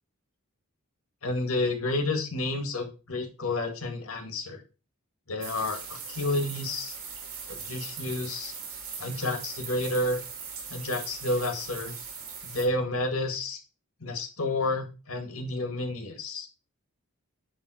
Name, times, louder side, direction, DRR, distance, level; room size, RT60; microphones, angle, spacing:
voice 1, 1.2-4.6 5.3-7.0 7.5-8.5 9.0-10.2 10.7-11.9 12.5-13.6 14.0-16.5, left 2 dB, 75° left, 5 dB, 2.0 m, -30 dB
sound 1, 5.4-12.6, right 6 dB, 85° right, 3.0 m, -40 dB
10.5 x 3.8 x 4.9 m, 0.32 s
head